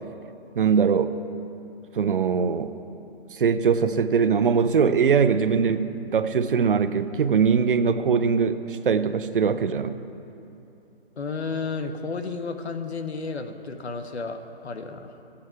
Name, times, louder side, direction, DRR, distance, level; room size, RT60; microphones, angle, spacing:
voice 1, 0.6-1.2 1.9-2.7 3.3-10.0, right 6 dB, 55° right, 11 dB, 0.6 m, -22 dB
voice 2, 11.2-15.2, left 4 dB, 90° left, 7 dB, 1.1 m, -32 dB
14.0 x 8.6 x 4.6 m, 2.8 s
hypercardioid pair, 165°, 32 cm